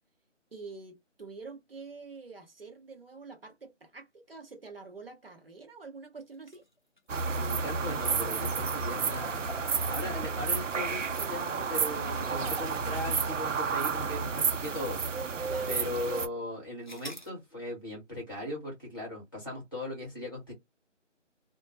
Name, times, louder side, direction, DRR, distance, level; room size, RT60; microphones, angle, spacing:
voice 1, 0.5-6.6 15.5-15.7, right 4 dB, 50° right, 0.7 m, -46 dB
sound 1, 6.3-14.8 15.3-15.4 16.8-17.3, left 2 dB, 40° left, 0.4 m, -50 dB
sound 2, 7.1-16.3, right 5 dB, 85° right, 0.6 m, -31 dB
voice 2, 7.3-9.5 9.9-15.0 15.7-20.5, left 1 dB, 15° left, 0.9 m, -38 dB
2.2 x 2.1 x 2.7 m
figure-of-eight pair, 170°, 37 cm